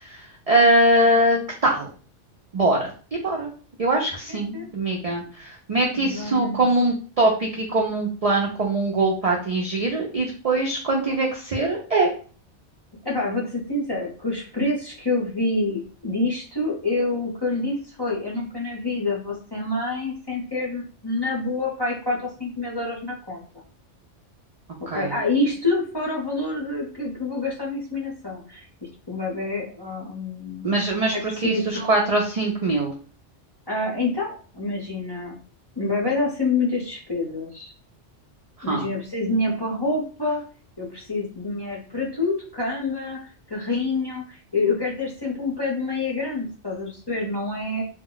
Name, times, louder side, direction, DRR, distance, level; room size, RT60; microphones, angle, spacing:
voice 1, 0.0-1.9 2.5-2.9 3.2-3.5 3.8-12.1 24.9-25.2 30.6-31.1 31.4-32.9 38.6-38.9, right 2 dB, 55° right, -1 dB, 0.4 m, -22 dB
voice 2, 4.3-4.7 6.0-6.6 13.0-23.4 24.9-28.7 29.1-30.8 31.1-32.0 33.7-35.3 35.8-37.7 38.6-40.4 40.8-47.8, left 2 dB, 25° left, -4 dB, 0.6 m, -27 dB
2.2 x 2.0 x 3.7 m, 0.39 s
omnidirectional pair, 1.2 m